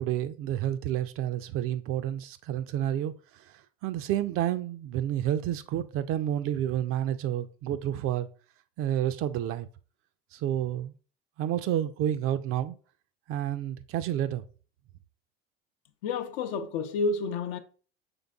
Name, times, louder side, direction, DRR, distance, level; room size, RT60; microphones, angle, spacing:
voice 1, 0.0-3.5 3.8-8.3 8.8-9.7 10.3-10.9 11.4-12.8 13.3-14.4, right 11 dB, 45° right, 0.4 m, -30 dB
voice 2, 16.0-17.6, left 4 dB, 70° left, 0.6 m, -30 dB
5.3 x 3.4 x 2.3 m
hypercardioid pair, 75°, 31 cm